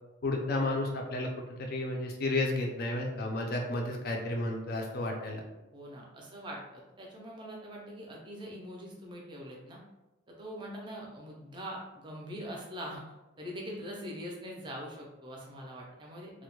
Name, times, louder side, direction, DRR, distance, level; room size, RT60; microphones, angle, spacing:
voice 1, 0.2-5.4, left 2 dB, 50° left, 2 dB, 0.4 m, -32 dB
voice 2, 5.7-9.8 10.3-13.0 13.4-16.3, equal, 25° right, -2 dB, 0.5 m, -43 dB
2.2 x 2.1 x 2.9 m, 1.0 s
head